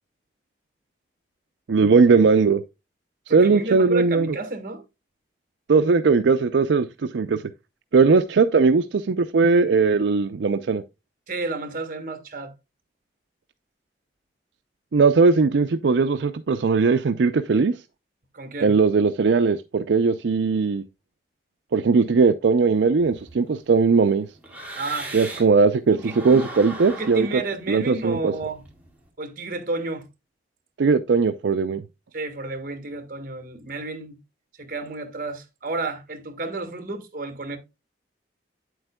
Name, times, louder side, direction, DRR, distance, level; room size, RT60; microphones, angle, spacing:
voice 1, 1.7-2.6 3.3-4.4 5.7-6.9 7.1-7.4 7.9-10.8 14.9-17.7 18.6-20.8 21.7-24.3 25.1-26.0 26.2-27.3 27.7-28.3 30.8-31.8, right 4 dB, 80° right, 0.4 m, -19 dB
voice 2, 3.3-4.8 11.3-12.5 18.3-18.7 24.7-25.1 25.9-26.5 26.9-28.6 29.2-30.1 32.1-34.2 34.6-37.6, right 3 dB, 50° right, 1.5 m, -31 dB
sound 1, 23.0-25.6 26.0-29.0, right 2 dB, 10° right, 2.1 m, -40 dB
8.8 x 7.8 x 2.2 m
head